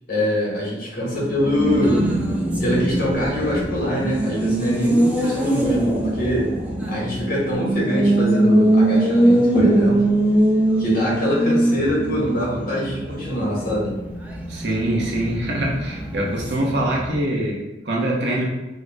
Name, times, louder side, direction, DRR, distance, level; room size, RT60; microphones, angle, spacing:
voice 1, 0.1-2.1 2.6-6.5 6.9-10.0 10.8-13.9, equal, 55° left, -5 dB, 1.2 m, -23 dB
Race car auto racing, 1.1-17.4, right 1 dB, 10° right, 0.5 m, -22 dB
voice 2, 14.5-18.5, right 1 dB, 70° right, -2 dB, 0.7 m, -24 dB
3.7 x 2.1 x 3.4 m, 1.0 s
head